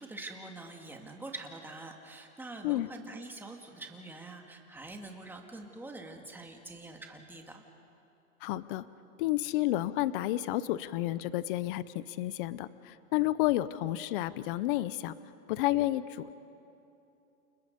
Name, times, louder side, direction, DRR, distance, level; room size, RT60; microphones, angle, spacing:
voice 1, 0.0-7.6, right 2 dB, 5° right, 2 dB, 1.9 m, -45 dB
voice 2, 8.4-8.8 9.2-15.1 15.5-16.3, left 16 dB, 40° left, 16 dB, 0.7 m, -31 dB
30.0 x 28.0 x 5.3 m, 2.8 s
hypercardioid pair, 150°, 43 cm